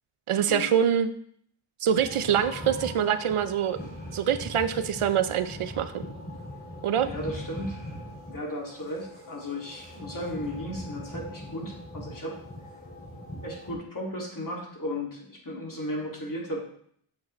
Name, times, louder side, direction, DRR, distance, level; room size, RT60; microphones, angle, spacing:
voice 1, 0.3-1.1 1.8-3.8 4.1-6.0 6.8-7.1, right 8 dB, 85° right, 11 dB, 0.6 m, -25 dB
sound 1, 2.0-13.7, left 1 dB, 20° left, 2.5 m, -41 dB
voice 2, 7.0-7.8 8.3-12.4 13.4-16.6, left 1 dB, 40° left, -2 dB, 2.4 m, -35 dB
7.4 x 6.0 x 3.2 m, 0.64 s
wide cardioid pair, 60°, 49 cm